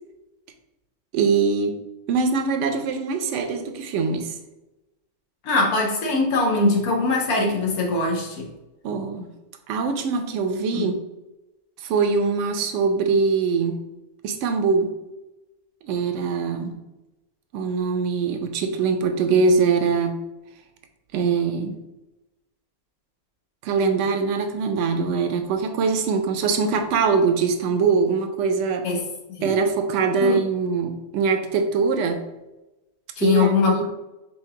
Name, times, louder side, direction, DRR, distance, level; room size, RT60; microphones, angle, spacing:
voice 1, 1.1-1.8 2.1-4.3 8.8-9.3 9.7-10.9 11.8-13.8 14.2-14.9 15.8-16.8 17.5-20.2 21.1-21.8 23.6-28.9 29.4-32.2 33.2-33.9, right 5 dB, 65° right, 6 dB, 0.8 m, -22 dB
voice 2, 5.4-8.5 10.7-10.9 28.8-29.0 29.4-29.5 30.2-30.4 33.2-33.9, left 3 dB, 90° left, 0 dB, 1.4 m, -22 dB
4.4 x 3.8 x 2.8 m, 0.98 s
omnidirectional pair, 1.5 m